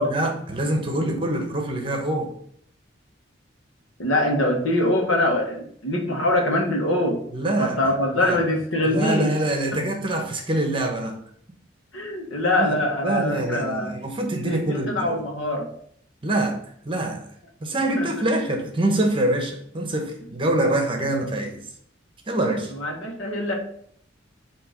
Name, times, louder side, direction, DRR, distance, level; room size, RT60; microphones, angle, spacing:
voice 1, 0.0-2.3 7.3-8.4 8.8-11.1 12.6-15.2 16.2-17.3 17.6-21.6 22.3-22.7, right 1 dB, 25° right, 3 dB, 1.0 m, -25 dB
voice 2, 4.0-7.2 7.6-9.3 9.7-9.8 11.9-13.9 14.4-15.7 18.0-18.1 22.7-23.5, left 1 dB, 85° left, 1 dB, 1.4 m, -23 dB
7.9 x 3.0 x 5.1 m, 0.65 s
head